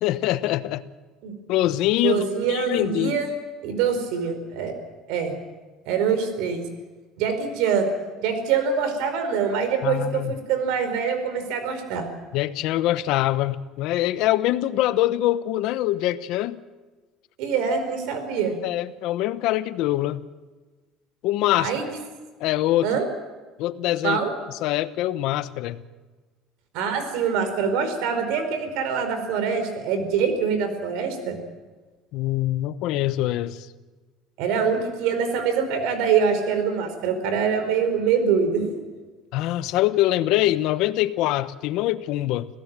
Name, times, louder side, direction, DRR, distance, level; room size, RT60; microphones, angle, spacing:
voice 1, 0.0-0.8 1.5-3.2 9.8-10.3 12.3-16.6 18.6-20.2 21.2-21.7 22.4-22.9 23.6-24.2 24.6-25.8 32.1-33.7 39.3-42.5, left 15 dB, 65° left, 14 dB, 1.0 m, -24 dB
voice 2, 2.0-3.3 3.6-4.7 5.1-5.3 5.9-6.6 7.2-7.9 8.2-12.1 17.4-18.6 21.6-21.9 22.8-23.0 24.0-24.3 26.7-31.4 34.4-38.8, right 6 dB, 75° right, 8 dB, 4.6 m, -24 dB
26.0 x 16.5 x 7.5 m, 1.3 s
cardioid pair, 145°, 0 cm